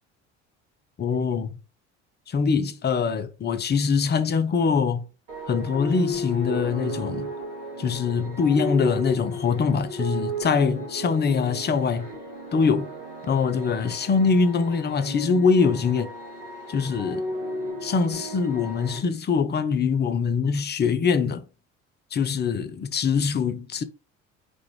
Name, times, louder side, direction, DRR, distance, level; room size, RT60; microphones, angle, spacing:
voice 1, 1.0-1.5 2.3-5.1 5.5-7.3 7.8-12.1 12.5-12.9 13.2-16.1 16.7-17.3 17.8-21.4 22.1-23.8, left 5 dB, 25° left, 0.7 m, -23 dB
sound 1, 5.3-19.0, equal, 90° right, 1.6 m, -34 dB
5.1 x 2.4 x 3.2 m
hypercardioid pair, 65°, 37 cm